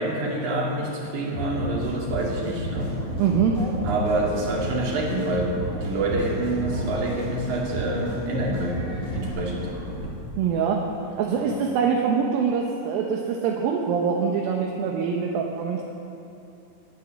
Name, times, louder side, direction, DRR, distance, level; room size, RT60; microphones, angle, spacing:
voice 1, 0.0-2.9 3.8-8.8 9.1-9.7 11.3-11.5, right 2 dB, 55° right, -2 dB, 3.8 m, -27 dB
sound 1, 1.3-9.3, equal, 65° left, 6.9 m, -32 dB
sound 2, 2.6-10.1, equal, 25° right, 1.9 m, -36 dB
voice 2, 3.2-3.6 10.4-10.8 11.2-15.8, right 6 dB, 75° right, 0 dB, 2.8 m, -24 dB
20.5 x 9.3 x 7.3 m, 2.7 s
omnidirectional pair, 4.4 m